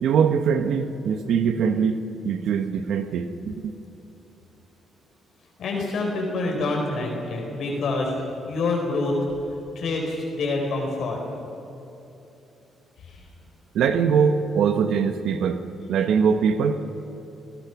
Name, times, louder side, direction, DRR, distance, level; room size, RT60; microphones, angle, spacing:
voice 1, 0.0-2.0 2.2-3.7 13.7-15.6 15.9-16.8, right 6 dB, 75° right, 8 dB, 1.2 m, -22 dB
voice 2, 5.6-8.1 8.5-9.1 9.7-11.2 13.1-13.2, left 3 dB, 65° left, 0 dB, 4.8 m, -26 dB
29.0 x 18.0 x 6.1 m, 2.9 s
cardioid pair, 90°, 0 cm